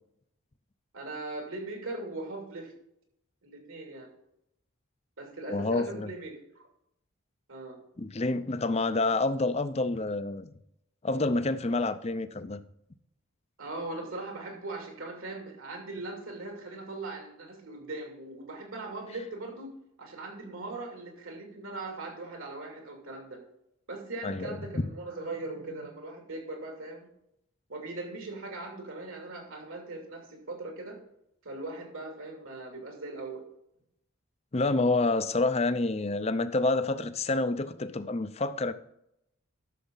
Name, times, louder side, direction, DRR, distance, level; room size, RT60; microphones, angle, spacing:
voice 1, 0.9-2.7 3.4-4.1 5.2-6.6 7.5-7.8 13.6-19.7 20.0-23.4 23.9-27.1 27.7-31.0 31.4-33.4, right 2 dB, 70° right, 2 dB, 2.8 m, -40 dB
voice 2, 5.5-6.1 8.0-10.5 11.0-12.6 24.2-24.9 34.5-38.7, left 2 dB, 30° left, 12 dB, 0.5 m, -28 dB
11.5 x 7.0 x 4.0 m, 0.79 s
head